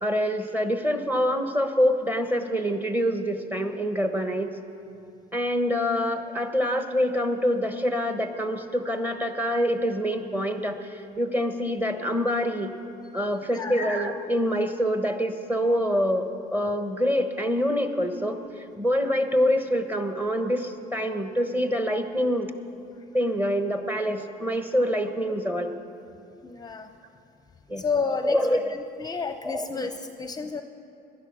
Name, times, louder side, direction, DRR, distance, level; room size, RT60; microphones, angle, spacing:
voice 1, 0.0-4.5 5.3-12.7 13.1-22.5 23.1-25.7 27.7-27.8 28.2-28.7 29.4-29.9, equal, 10° right, 6 dB, 1.2 m, -26 dB
voice 2, 26.4-26.9 27.8-28.4 28.7-30.6, left 5 dB, 25° left, 7 dB, 0.7 m, -31 dB
18.0 x 11.5 x 6.2 m, 2.6 s
cardioid pair, 110°, 17 cm